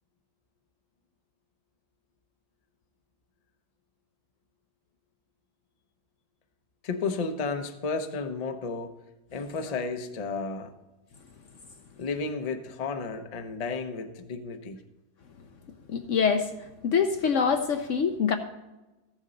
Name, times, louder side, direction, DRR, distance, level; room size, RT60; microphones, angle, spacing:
voice 1, 6.8-8.9 9.3-10.7 12.0-14.8, left 4 dB, 40° left, 7 dB, 0.6 m, -32 dB
voice 2, 15.9-16.5 16.8-18.4, left 6 dB, 65° left, 7 dB, 0.8 m, -24 dB
14.5 x 7.3 x 3.9 m, 1.0 s
omnidirectional pair, 1.7 m